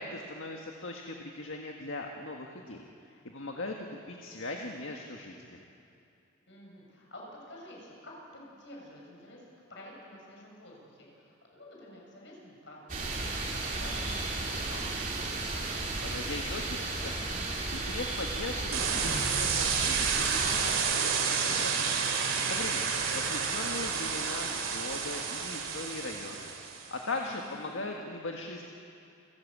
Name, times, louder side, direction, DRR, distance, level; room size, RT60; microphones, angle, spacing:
voice 1, 0.0-5.6 16.0-17.3 17.7-26.5 26.9-28.6, left 2 dB, 85° left, 1 dB, 1.6 m, -40 dB
voice 2, 6.5-13.4 13.7-14.9 27.1-27.9, left 1 dB, 65° left, -2 dB, 6.6 m, -49 dB
sound 1, 12.9-20.8, right 2 dB, 40° right, 3.3 m, -34 dB
sound 2, 18.7-26.9, right 6 dB, 90° right, 2.8 m, -30 dB
29.0 x 13.5 x 8.6 m, 2.6 s
head